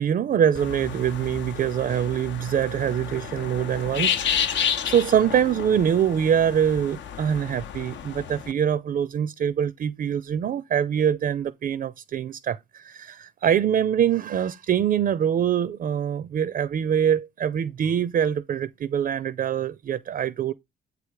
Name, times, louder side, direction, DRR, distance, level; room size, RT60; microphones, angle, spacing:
voice 1, 0.0-20.5, right 9 dB, 45° right, 0.4 m, -24 dB
sound 1, 0.5-8.5, left 8 dB, 70° left, 0.8 m, -31 dB
8.0 x 3.4 x 4.7 m
cardioid pair, 90°, 20 cm